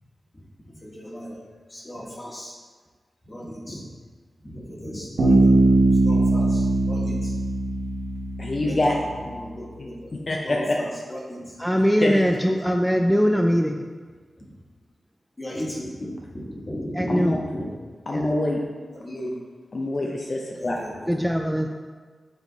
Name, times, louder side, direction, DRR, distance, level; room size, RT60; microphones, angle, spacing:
voice 1, 0.8-1.4 1.7-2.6 3.2-3.9 4.4-7.4 8.6-10.1 10.4-11.6 14.4-14.5 15.4-17.7 18.1-18.3 18.9-19.4 20.6-21.2, equal, 30° left, -3 dB, 1.5 m, -36 dB
Bass guitar, 5.2-8.9, right 2 dB, 85° right, 1.5 m, -20 dB
voice 2, 8.4-9.0 9.8-10.8 12.0-12.1 17.1-17.4 18.1-18.6 19.7-20.8, left 2 dB, 50° left, -1 dB, 0.6 m, -25 dB
voice 3, 11.6-13.9 16.9-17.4 18.1-18.3 21.1-21.7, equal, ahead, 3 dB, 0.4 m, -21 dB
7.3 x 3.7 x 3.9 m, 1.5 s
cardioid pair, 65°, 0 cm